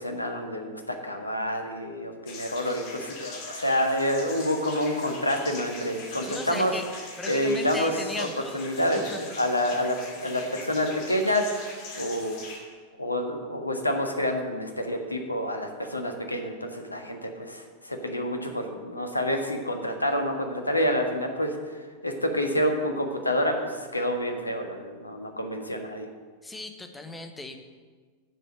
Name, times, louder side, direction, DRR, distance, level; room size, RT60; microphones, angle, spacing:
voice 1, 0.0-6.7 7.3-7.9 8.2-8.3 8.5-11.5 11.9-12.4 13.0-21.5 22.0-26.1, equal, 85° left, 4 dB, 1.5 m, -28 dB
sound 1, 2.3-12.6, left 3 dB, 45° left, 2.8 m, -42 dB
voice 2, 6.2-6.8 7.2-8.8 9.1-9.2 26.4-27.6, left 2 dB, 10° left, 6 dB, 1.3 m, -37 dB
9.9 x 7.6 x 7.9 m, 1.5 s
figure-of-eight pair, 90°, 0 cm